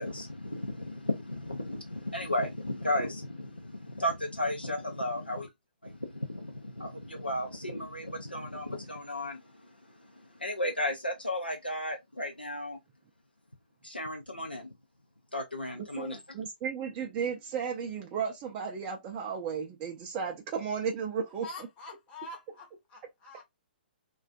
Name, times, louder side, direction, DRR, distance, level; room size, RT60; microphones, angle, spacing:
voice 1, 0.0-5.5 5.8-9.7 10.1-12.8 13.8-14.7 15.3-16.2, left 1 dB, 90° left, 0.5 m, -34 dB
voice 2, 16.0-21.5, right 6 dB, 25° right, 0.4 m, -34 dB
voice 3, 21.4-23.4, left 2 dB, 20° left, 0.7 m, -45 dB
2.4 x 2.3 x 2.4 m
figure-of-eight pair, 120°, 5 cm